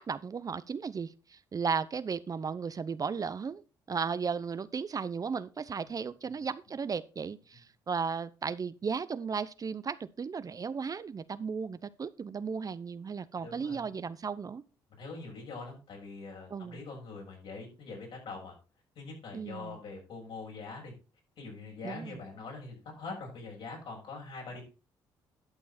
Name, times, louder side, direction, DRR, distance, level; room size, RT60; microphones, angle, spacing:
voice 1, 0.0-3.6 3.9-14.6 16.5-16.8 19.3-19.8 21.8-22.2, right 5 dB, 40° right, 0.7 m, -35 dB
voice 2, 13.4-13.9 15.0-18.5 18.9-20.9 21.4-24.6, left 3 dB, 65° left, 6.8 m, -43 dB
11.5 x 6.7 x 4.2 m
supercardioid pair, 55°, 10 cm